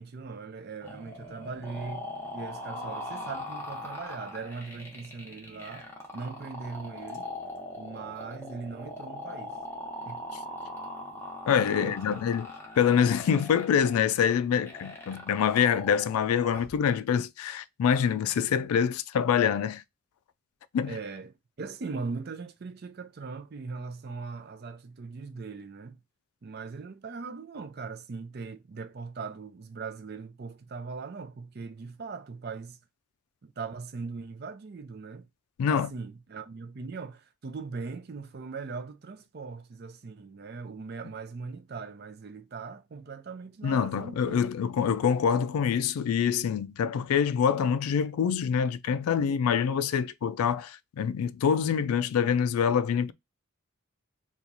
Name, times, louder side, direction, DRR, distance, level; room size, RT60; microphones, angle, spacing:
voice 1, 0.0-7.3 7.8-9.6 10.0-10.2 11.6-12.2 20.9-26.0 26.4-32.8 33.4-35.3 35.7-44.4, right 4 dB, 45° right, 0.4 m, -40 dB
sound 1, 0.8-16.8, left 1 dB, 10° left, 0.7 m, -41 dB
voice 2, 11.5-12.5 12.8-19.8 20.7-21.0 35.6-35.9 43.6-53.1, left 7 dB, 85° left, 0.3 m, -25 dB
2.9 x 2.4 x 3.8 m
head